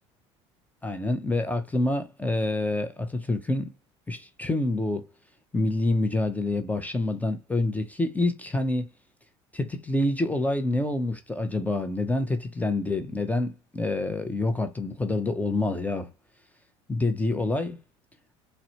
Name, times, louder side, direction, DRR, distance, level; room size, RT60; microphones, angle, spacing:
voice 1, 0.8-3.7 4.1-5.1 5.5-8.9 9.5-16.1 16.9-17.8, left 2 dB, 10° left, 0.6 m, -27 dB
4.0 x 2.1 x 2.8 m
hypercardioid pair, 85°, 16 cm